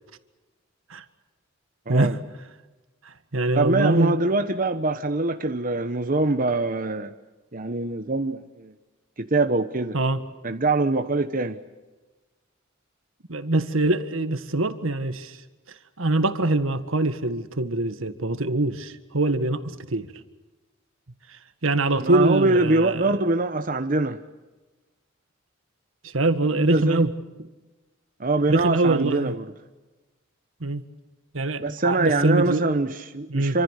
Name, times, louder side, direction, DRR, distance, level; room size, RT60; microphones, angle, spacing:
voice 1, 1.9-2.2 3.6-7.1 7.5-8.7 9.2-10.0 10.4-11.6 22.0-24.2 26.5-27.0 28.2-29.5 31.6-33.6, right 2 dB, 40° right, 1.1 m, -23 dB
voice 2, 3.0-4.2 9.9-10.2 13.3-15.4 16.0-20.1 21.3-23.2 26.0-27.1 28.5-29.3 30.6-30.8 31.3-32.7 33.3-33.6, right 2 dB, 80° right, 1.7 m, -24 dB
27.5 x 26.0 x 6.6 m
head